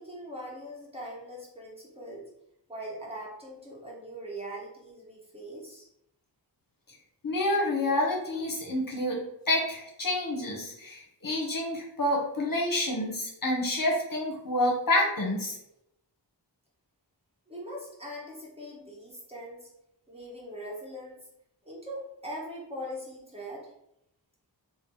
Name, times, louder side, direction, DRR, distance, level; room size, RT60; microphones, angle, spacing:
voice 1, 0.0-2.2 2.7-5.9 17.5-19.7 20.1-21.2 21.6-23.7, equal, 15° right, -5 dB, 1.2 m, -41 dB
voice 2, 7.2-9.2 9.5-15.6, left 1 dB, 50° left, -2 dB, 1.0 m, -28 dB
3.7 x 2.1 x 3.8 m, 0.80 s
wide cardioid pair, 50°, 44 cm